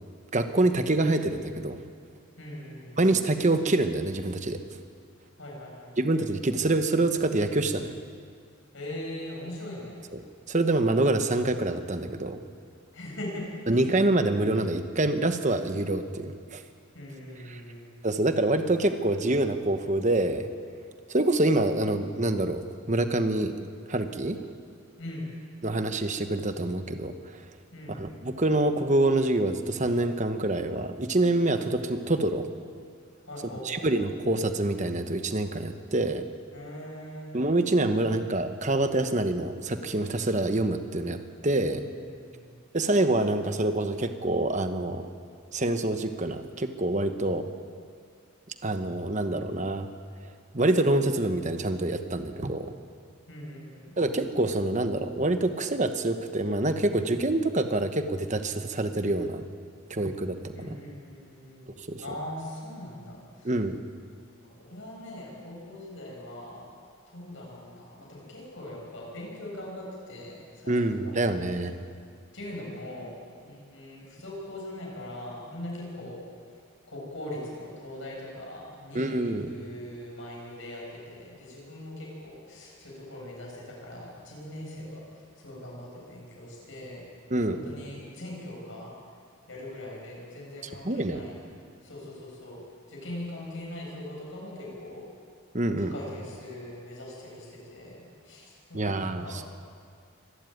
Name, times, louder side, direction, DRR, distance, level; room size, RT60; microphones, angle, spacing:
voice 1, 0.3-1.8 3.0-4.6 6.0-7.9 10.1-10.2 10.5-12.4 13.7-16.6 17.5-17.6 18.0-20.5 21.1-23.5 23.9-24.4 25.6-27.4 28.0-32.5 33.6-36.2 37.3-41.8 42.7-45.1 45.5-47.5 48.6-49.9 50.5-52.7 54.0-59.4 59.9-60.8 61.8-62.0 63.4-63.8 70.7-71.7 78.9-79.5 87.3-87.6 90.8-91.2 95.5-95.9 98.7-99.5, right 2 dB, 35° right, 8 dB, 1.2 m, -26 dB
voice 2, 2.4-3.0 5.4-6.1 8.7-10.0 12.9-13.9 16.9-17.9 25.0-25.3 27.7-28.0 33.3-34.0 36.5-37.3 41.6-42.5 53.3-54.0 60.5-61.6 62.0-63.5 64.5-66.7 67.1-71.4 72.3-73.1 73.4-76.2 76.9-79.1 79.4-85.0 85.4-87.0 87.3-88.9 89.5-91.4 91.8-92.6 92.9-95.0 95.8-99.3, left 1 dB, 65° left, -2 dB, 7.8 m, -41 dB
25.0 x 13.5 x 9.4 m, 2.1 s
head